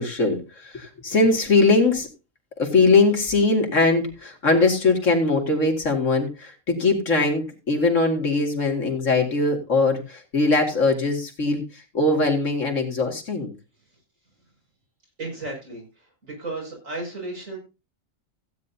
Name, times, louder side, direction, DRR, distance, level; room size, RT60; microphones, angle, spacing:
voice 1, 0.0-2.1 2.6-13.5, left 3 dB, 70° left, 2 dB, 2.7 m, -21 dB
voice 2, 15.2-17.6, right 2 dB, 75° right, 0 dB, 6.6 m, -34 dB
16.0 x 9.7 x 2.7 m, 0.29 s
omnidirectional pair, 1.4 m